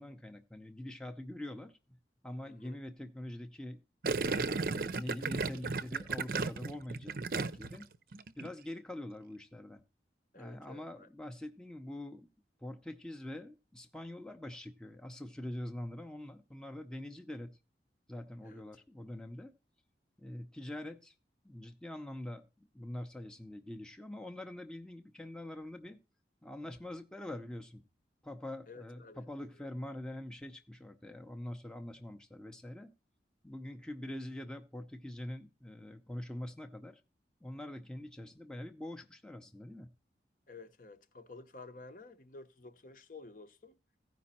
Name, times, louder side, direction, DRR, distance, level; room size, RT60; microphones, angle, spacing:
voice 1, 0.0-1.8 2.2-3.8 4.3-7.9 8.4-9.8 10.3-12.3 12.6-17.5 18.1-19.5 20.2-21.1 21.4-22.5 22.7-26.0 26.4-27.8 28.2-32.9 33.4-37.0 37.4-39.9, left 1 dB, 5° left, 0.6 m, -44 dB
voice 2, 2.4-2.8 10.3-11.1 18.4-18.6 28.7-29.2 29.6-29.7 40.5-43.8, left 3 dB, 45° left, 0.8 m, -52 dB
Gurgling, 4.0-7.8 8.1-8.5, right 4 dB, 50° right, 0.6 m, -34 dB
15.5 x 5.2 x 4.1 m
head